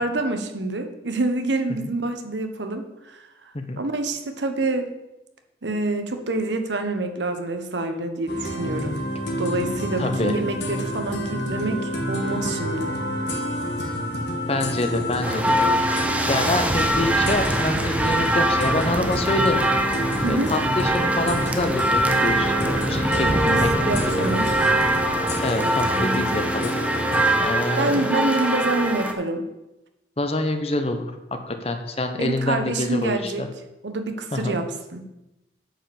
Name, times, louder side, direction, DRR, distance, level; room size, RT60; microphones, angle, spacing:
voice 1, 0.0-3.2 3.8-4.9 5.6-9.0 9.4-12.9 20.2-20.5 23.2-24.5 25.8-26.3 27.8-29.4 32.2-33.5 33.8-35.0, right 2 dB, 80° right, 7 dB, 1.1 m, -27 dB
sound 1, 8.3-27.4, equal, 70° left, 1.6 m, -29 dB
voice 2, 10.0-10.3 14.5-15.9 16.3-19.6 20.3-23.3 23.5-23.7 24.1-24.4 25.4-26.7 27.4-28.0 30.2-31.1 31.5-33.5 34.3-34.6, left 2 dB, 35° left, 6 dB, 0.9 m, -26 dB
sound 2, 15.2-29.1, right 1 dB, 10° right, 0.7 m, -23 dB
8.9 x 5.2 x 7.1 m, 0.95 s
head